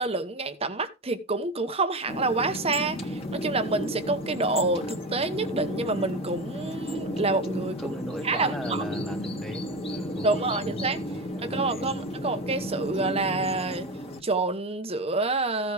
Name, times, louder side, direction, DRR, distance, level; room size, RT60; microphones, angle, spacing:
voice 1, 0.0-7.8 8.2-8.8 10.2-11.0 11.4-13.9 14.2-15.7, right 3 dB, 25° right, 1.1 m, -28 dB
sound 1, 2.1-14.2, equal, 25° left, 2.0 m, -33 dB
voice 2, 7.8-12.1, equal, ahead, 1.0 m, -39 dB
15.5 x 8.1 x 3.5 m
head